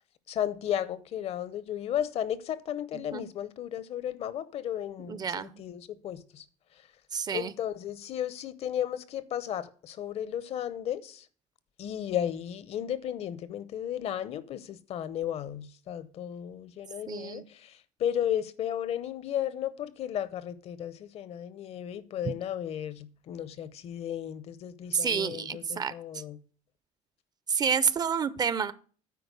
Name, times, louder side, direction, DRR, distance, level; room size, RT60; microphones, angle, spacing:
voice 1, 0.3-6.4 7.3-11.3 11.8-26.4, left 10 dB, 55° left, 0.7 m, -34 dB
voice 2, 5.1-5.6 7.1-7.5 17.1-17.5 24.9-26.2 27.5-28.7, right 6 dB, 30° right, 0.5 m, -29 dB
9.3 x 4.3 x 6.8 m
cardioid pair, 125°, 13 cm